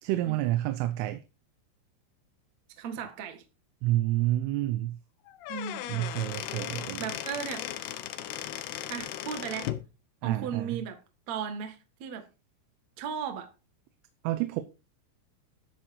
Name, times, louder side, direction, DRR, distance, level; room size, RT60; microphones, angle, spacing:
voice 1, 0.0-1.2 3.8-5.0 5.9-7.1 10.2-10.8 14.2-14.6, right 15 dB, 85° right, 3.4 m, -29 dB
voice 2, 2.8-3.4 5.5-6.1 7.0-7.7 8.9-9.7 10.2-11.0 11.3-12.3 13.0-13.5, right 7 dB, 55° right, 2.1 m, -36 dB
Squeak / Wood, 5.3-9.9, left 12 dB, 75° left, 2.4 m, -37 dB
13.5 x 8.0 x 4.7 m
omnidirectional pair, 5.7 m